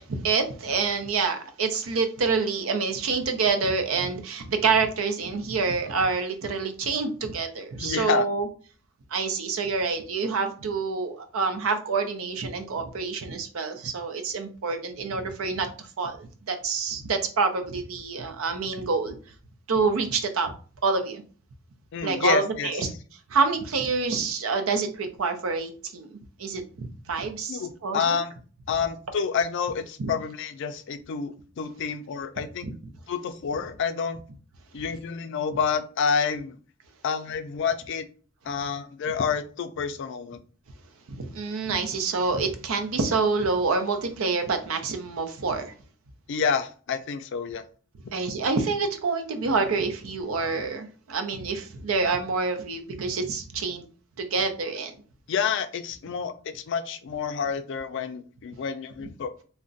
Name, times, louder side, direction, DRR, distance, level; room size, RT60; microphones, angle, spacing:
voice 1, 0.0-8.5 9.1-19.2 19.7-20.5 20.8-21.2 22.0-22.9 23.3-28.2 30.0-30.1 41.1-45.7 48.1-53.8 54.2-54.9, right 4 dB, 85° right, 0.6 m, -27 dB
voice 2, 7.8-8.3 21.9-22.7 27.5-28.3 28.7-32.7 33.1-34.2 34.7-36.6 37.0-38.1 38.4-40.4 46.3-47.6 55.3-59.3, left 6 dB, 60° left, 0.3 m, -28 dB
2.4 x 2.1 x 3.8 m
head